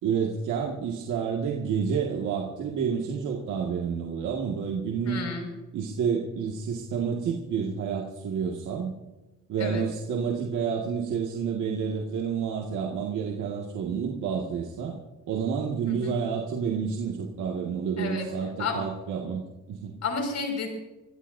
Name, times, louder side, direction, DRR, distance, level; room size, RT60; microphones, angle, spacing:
voice 1, 0.0-5.2 5.7-8.9 9.5-15.0 15.3-20.0, right 6 dB, 80° right, -1 dB, 2.1 m, -29 dB
voice 2, 5.0-5.5 9.6-9.8 15.9-16.2 18.0-18.3 18.6-18.8 20.0-20.7, left 5 dB, 65° left, 2 dB, 5.8 m, -31 dB
26.0 x 16.5 x 2.7 m, 1.1 s
cardioid pair, 90°, 30 cm